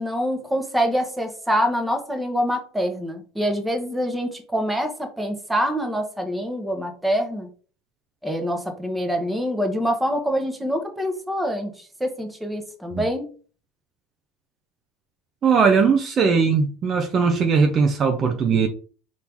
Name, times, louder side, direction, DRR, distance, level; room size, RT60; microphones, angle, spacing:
voice 1, 0.0-7.5 8.2-13.2, equal, 5° right, 4 dB, 1.0 m, -25 dB
voice 2, 15.4-18.7, right 5 dB, 35° right, 5 dB, 0.6 m, -19 dB
4.5 x 2.8 x 3.5 m, 0.40 s
supercardioid pair, 105°, 0 cm